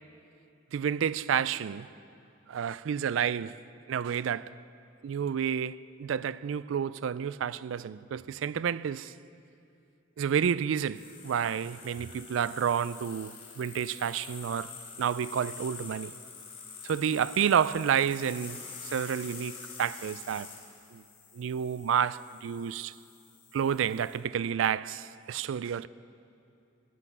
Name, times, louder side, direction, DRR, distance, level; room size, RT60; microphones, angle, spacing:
voice 1, 0.7-1.9 2.5-3.6 3.9-4.6 5.0-9.1 10.2-16.1 16.8-20.5 20.9-21.0 21.3-22.9 23.5-25.9, right 8 dB, 80° right, 0.3 m, -30 dB
sound 1, 10.9-24.2, left 5 dB, 35° left, 4.0 m, -46 dB
19.0 x 10.0 x 6.1 m
head